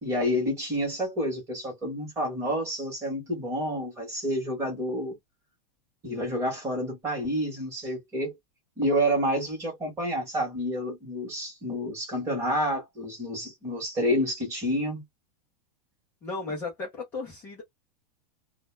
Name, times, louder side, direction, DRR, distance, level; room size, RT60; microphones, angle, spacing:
voice 1, 0.0-5.2 6.0-8.3 8.8-15.0, equal, 15° right, 0.9 m, -29 dB
voice 2, 16.2-17.6, left 3 dB, 10° left, 0.3 m, -35 dB
2.0 x 2.0 x 3.1 m
supercardioid pair, 180°, 21 cm